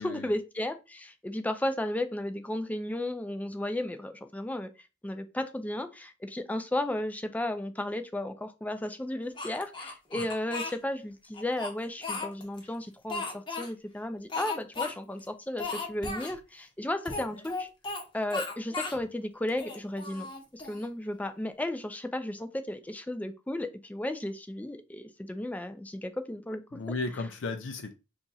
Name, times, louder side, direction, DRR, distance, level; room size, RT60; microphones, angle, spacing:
voice 1, 0.0-4.7 5.0-17.7 18.1-20.3 20.5-26.6 26.9-27.0, left 1 dB, 10° left, 0.3 m, -34 dB
Speech, 9.4-10.8 11.3-12.6 13.1-13.7 14.3-14.9 15.2-15.3 15.6-16.3 17.0-18.0 18.3-19.0 19.5-20.9, left 3 dB, 25° left, 0.8 m, -36 dB
voice 2, 26.7-27.9, left 3 dB, 80° left, 0.5 m, -35 dB
2.9 x 2.4 x 4.0 m
head